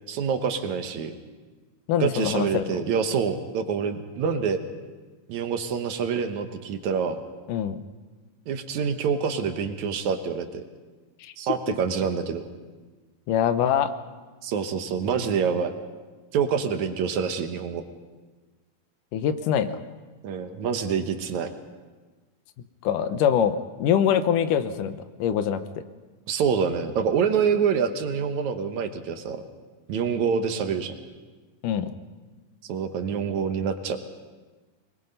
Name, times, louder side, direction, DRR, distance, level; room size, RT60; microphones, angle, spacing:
voice 1, 0.1-1.1 2.0-4.6 5.3-7.2 8.5-10.6 11.4-12.4 14.4-15.7 16.3-17.8 20.2-21.5 26.3-29.4 29.9-30.9 32.7-34.0, right 6 dB, 70° right, 7 dB, 2.3 m, -26 dB
voice 2, 1.9-2.8 7.5-7.8 11.2-11.3 13.3-13.9 19.1-19.8 22.8-25.8 31.6-31.9, left 9 dB, 85° left, 11 dB, 2.5 m, -24 dB
23.0 x 21.0 x 5.4 m, 1.3 s
omnidirectional pair, 3.6 m